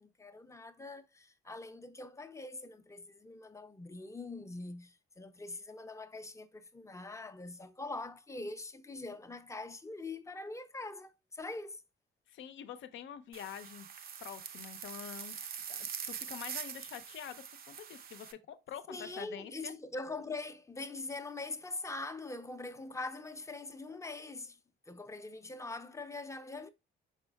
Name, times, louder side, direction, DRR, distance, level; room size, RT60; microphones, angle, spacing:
voice 1, 0.0-11.8 18.9-24.6 24.9-26.7, left 3 dB, 15° left, 0.5 m, -43 dB
voice 2, 12.3-13.9 14.2-19.7, left 9 dB, 75° left, 0.6 m, -46 dB
sound 1, 13.3-18.3, right 7 dB, 50° right, 0.5 m, -44 dB
5.0 x 4.5 x 2.2 m
cardioid pair, 90°, 20 cm